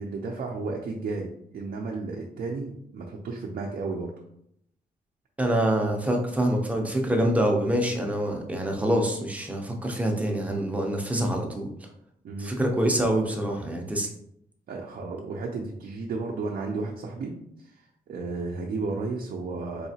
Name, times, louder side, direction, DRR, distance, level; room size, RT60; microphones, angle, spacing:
voice 1, 0.0-4.1 12.2-12.5 14.7-17.3 17.6-19.9, right 3 dB, 65° right, -1 dB, 0.5 m, -33 dB
voice 2, 5.4-11.7 12.4-14.1, right 1 dB, 10° right, 1 dB, 0.5 m, -25 dB
4.1 x 2.8 x 2.7 m, 0.73 s
wide cardioid pair, 160°, 16 cm